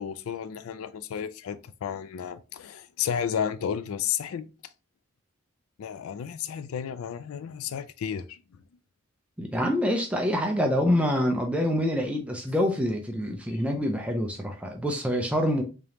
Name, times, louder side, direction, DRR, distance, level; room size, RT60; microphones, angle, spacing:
voice 1, 0.0-4.5 5.8-8.4, left 8 dB, 85° left, 0.4 m, -32 dB
voice 2, 9.4-15.6, equal, 5° right, 0.5 m, -26 dB
3.7 x 3.4 x 2.8 m
head